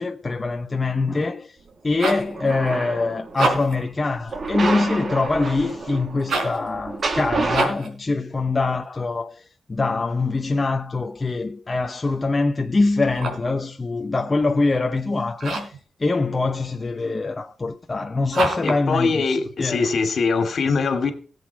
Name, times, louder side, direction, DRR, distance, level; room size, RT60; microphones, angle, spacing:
voice 1, 0.0-1.6 1.8-9.4 9.7-15.7 16.0-19.9, left 3 dB, 20° left, 0.7 m, -24 dB
sound 1, 1.7-2.3 3.2-3.9 6.2-6.6 7.5-7.9 13.0-13.5 15.4-15.8 18.3-18.8, right 3 dB, 70° right, 4.1 m, -26 dB
sound 2, 2.0-3.4 4.3-7.7, right 3 dB, 35° right, 1.6 m, -28 dB
voice 2, 18.6-21.1, left 4 dB, 55° left, 2.5 m, -22 dB
18.5 x 8.1 x 4.7 m
wide cardioid pair, 175°, 0 cm